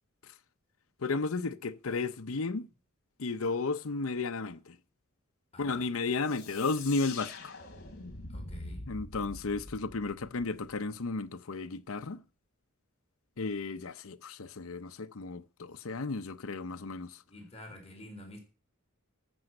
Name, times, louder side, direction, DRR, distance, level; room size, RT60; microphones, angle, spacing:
voice 1, 1.0-2.7 3.2-4.8 5.6-7.5 8.9-12.2 13.4-17.2, left 3 dB, 80° left, 0.8 m, -33 dB
voice 2, 5.5-5.9 8.3-8.9 17.3-18.4, left 1 dB, 30° left, 4.2 m, -49 dB
sound 1, 6.2-10.8, left 3 dB, 50° left, 3.4 m, -44 dB
14.0 x 6.2 x 7.7 m
head